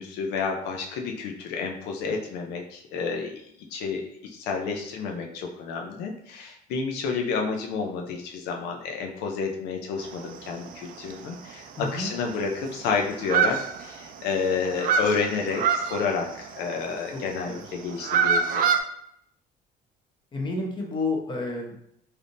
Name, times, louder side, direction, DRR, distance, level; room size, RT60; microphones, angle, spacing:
voice 1, 0.0-3.4 3.7-18.6, left 5 dB, 90° left, 2 dB, 0.5 m, -30 dB
sound 1, 10.0-10.7 11.0-11.1 11.5-11.6 11.8-12.8 13.2-14.3 14.5-17.1 17.7-18.8, right 6 dB, 55° right, 0.4 m, -25 dB
voice 2, 11.8-12.1 17.1-17.2 17.5-17.6 20.3-21.8, left 2 dB, 30° left, 0 dB, 0.8 m, -30 dB
3.4 x 2.7 x 2.5 m, 0.73 s
cardioid pair, 110°, 17 cm